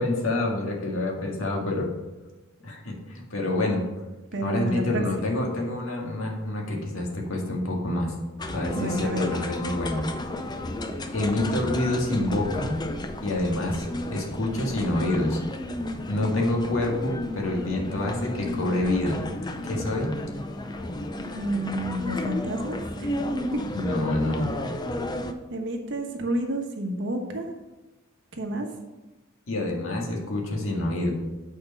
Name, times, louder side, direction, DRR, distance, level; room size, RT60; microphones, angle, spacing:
voice 1, 0.0-1.9 2.6-3.8 4.4-8.1 8.5-10.1 11.1-12.8 13.2-15.4 16.1-19.2 19.6-20.1 23.7-24.5 29.5-31.1, left 1 dB, 75° left, 0 dB, 1.8 m, -27 dB
voice 2, 4.3-5.0 8.7-9.3 21.3-23.1 25.5-27.4 28.4-28.7, right 1 dB, 60° right, 3 dB, 1.1 m, -29 dB
sound 1, 8.4-25.3, left 1 dB, 20° left, 0.5 m, -33 dB
8.3 x 4.6 x 5.6 m, 1.1 s
head